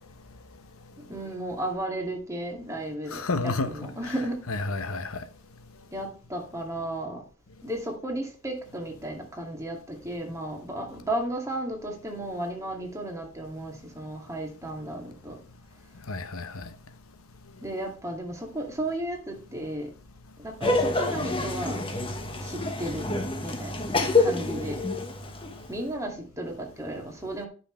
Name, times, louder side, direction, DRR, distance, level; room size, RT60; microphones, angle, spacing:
voice 1, 1.0-4.4 5.9-7.2 7.6-15.4 17.6-19.9 20.4-21.8 22.4-23.1 23.4-23.9 24.2-24.8 25.7-27.5, right 1 dB, 15° right, 2.3 m, -34 dB
voice 2, 3.1-4.1 4.5-5.2 16.1-16.7, left 3 dB, 90° left, 1.0 m, -31 dB
Laughter, 20.6-25.7, left 2 dB, 25° left, 1.3 m, -27 dB
10.5 x 6.1 x 3.2 m
head